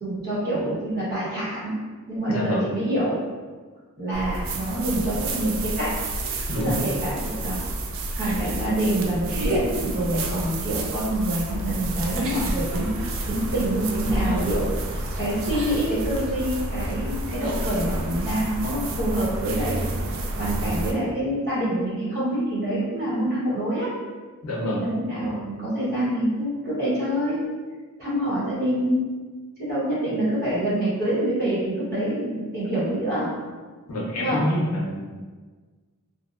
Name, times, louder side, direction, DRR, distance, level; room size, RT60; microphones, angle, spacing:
voice 1, 0.0-1.7 2.1-3.2 4.0-6.0 6.6-7.6 8.2-12.9 13.3-19.8 20.4-23.9 24.6-27.5 28.0-29.1 29.6-33.3 34.1-34.4, right 1 dB, 45° right, -9 dB, 1.1 m, -26 dB
voice 2, 2.3-2.6 6.5-6.8 24.4-24.9 33.9-35.1, equal, 90° left, -3 dB, 0.6 m, -27 dB
sound 1, 4.1-20.9, right 1 dB, 65° right, 0.3 m, -29 dB
2.6 x 2.1 x 2.3 m, 1.4 s
head